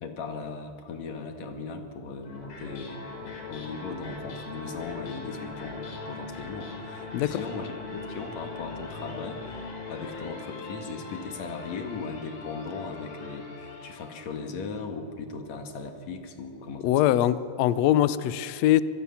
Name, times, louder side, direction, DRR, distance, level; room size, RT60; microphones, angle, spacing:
voice 1, 0.0-9.6 9.9-16.9, left 4 dB, 55° left, 5 dB, 2.9 m, -38 dB
sound 1, 2.2-14.5, left 4 dB, 75° left, 5.0 m, -41 dB
voice 2, 16.8-18.8, left 12 dB, 90° left, 15 dB, 1.5 m, -22 dB
25.0 x 21.0 x 7.1 m, 2.4 s
omnidirectional pair, 3.9 m